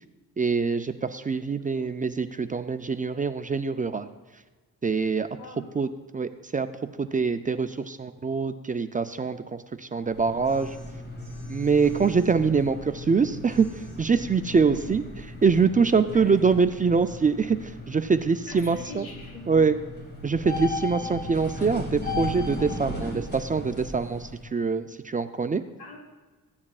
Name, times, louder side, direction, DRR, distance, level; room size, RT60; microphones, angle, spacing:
voice 1, 0.4-4.1 4.8-5.3 5.7-6.7 7.0-9.4 9.8-10.8 11.5-13.7 14.0-15.0 15.4-19.1 19.5-19.8 20.2-25.6, right 5 dB, 25° right, 10 dB, 0.4 m, -24 dB
voice 2, 1.5-1.9 5.4-5.7 14.6-14.9 16.1-16.5 18.5-19.7 25.8-26.0, left 3 dB, 80° left, -1 dB, 3.1 m, -42 dB
sound 1, 10.0-24.4, left 2 dB, 30° left, 2.4 m, -37 dB
15.0 x 9.6 x 2.4 m, 1.3 s
cardioid pair, 105°, 35 cm